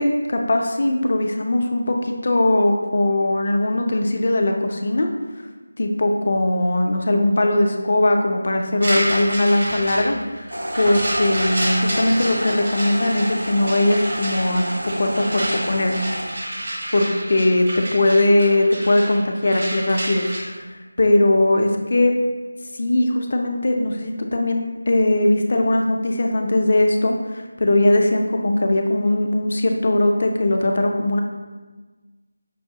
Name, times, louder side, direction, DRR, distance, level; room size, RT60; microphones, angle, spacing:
voice 1, 0.0-5.1 5.8-10.5 10.8-14.6 15.0-15.9 16.9-22.2 22.8-31.2, left 1 dB, 45° left, 3 dB, 0.4 m, -20 dB
sound 1, 8.8-20.4, right 1 dB, 45° right, 0.8 m, -29 dB
sound 2, 10.5-16.3, equal, 75° right, 0.5 m, -30 dB
5.4 x 2.3 x 2.7 m, 1.3 s
figure-of-eight pair, 165°, 0 cm